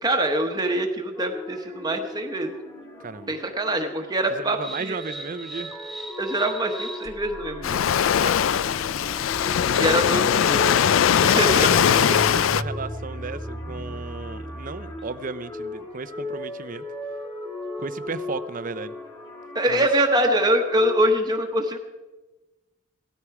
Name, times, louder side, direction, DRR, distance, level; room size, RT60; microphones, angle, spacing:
voice 1, 0.0-2.5 3.3-5.0 6.2-7.8 9.7-10.7 11.2-12.1 19.5-21.8, right 1 dB, 20° right, 4 dB, 1.1 m, -24 dB
sound 1, 1.1-21.0, left 2 dB, 25° left, 2.5 m, -37 dB
voice 2, 3.0-3.3 4.3-5.7 8.2-8.3 11.3-16.8 17.8-18.9 19.7-19.9, right 4 dB, 40° right, 14 dB, 0.6 m, -34 dB
sound 2, 4.6-15.2, right 1 dB, ahead, 1.2 m, -38 dB
Waves surf, 7.6-12.6, left 9 dB, 75° left, 0.4 m, -20 dB
17.5 x 13.0 x 4.8 m, 1.1 s
head